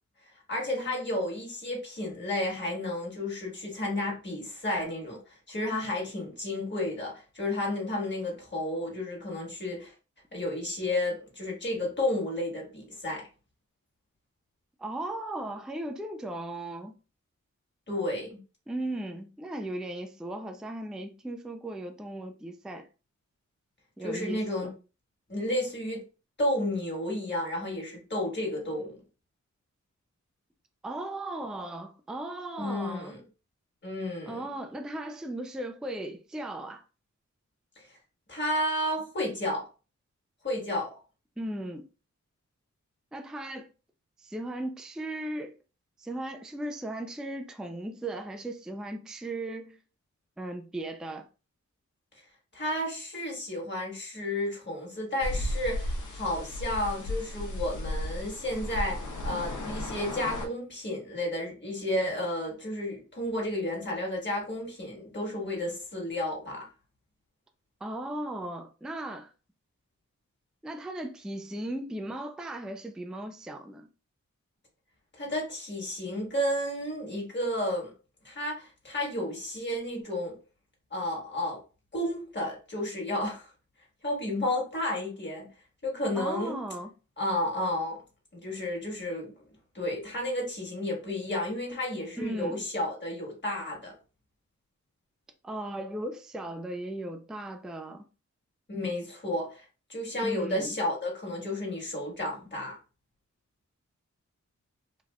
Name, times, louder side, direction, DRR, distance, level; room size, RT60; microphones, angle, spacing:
voice 1, 0.5-5.2 5.5-9.9 10.3-13.2 17.9-18.4 24.0-24.7 25.3-26.0 26.4-29.0 32.6-33.2 33.8-34.4 37.8-37.9 38.3-39.7 40.4-41.0 52.5-66.6 75.1-77.9 78.2-80.3 80.9-81.6 81.9-83.5 84.0-85.5 85.8-86.6 87.2-88.0 88.3-89.3 89.7-93.9 98.7-99.6 99.9-102.8, left 1 dB, 35° left, 1.5 m, -32 dB
voice 2, 14.8-17.0 18.7-22.9 24.0-24.7 30.8-33.1 34.3-36.8 41.4-41.9 43.1-43.7 44.2-45.5 46.0-49.8 50.4-51.3 67.8-69.3 70.6-73.9 86.2-86.9 92.2-92.6 95.4-98.0 100.2-100.8, right 1 dB, ahead, 0.4 m, -37 dB
sound 1, 55.2-60.5, left 1 dB, 75° left, 0.7 m, -34 dB
3.3 x 2.4 x 2.2 m
wide cardioid pair, 70°, 30 cm